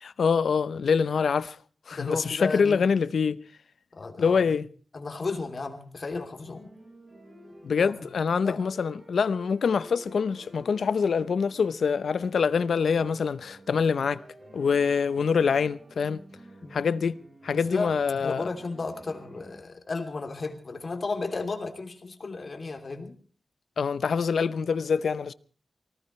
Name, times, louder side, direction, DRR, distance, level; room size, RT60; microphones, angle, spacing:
voice 1, 0.0-1.6 1.9-3.4 4.2-4.7 7.6-14.2 14.5-16.2 16.7-17.2 17.4-18.5 23.8-25.3, left 6 dB, 85° left, 0.7 m, -25 dB
voice 2, 1.9-2.9 4.0-4.6 4.9-6.7 7.8-8.0 8.4-8.7 16.6-16.7 17.7-18.0 18.2-23.1, left 3 dB, 45° left, 2.9 m, -34 dB
sound 1, 6.3-19.6, equal, 25° right, 6.4 m, -50 dB
24.0 x 18.5 x 3.2 m
wide cardioid pair, 160°, 0 cm